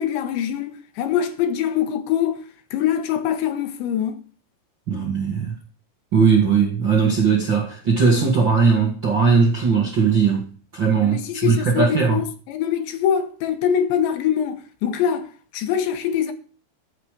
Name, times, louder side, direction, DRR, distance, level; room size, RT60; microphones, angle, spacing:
voice 1, 0.0-2.4 2.7-4.2 11.0-15.3 15.5-16.3, left 9 dB, 80° left, 3.5 m, -23 dB
voice 2, 4.9-5.5 6.1-12.2, right 5 dB, 45° right, 1.5 m, -19 dB
14.0 x 7.6 x 5.0 m
omnidirectional pair, 5.3 m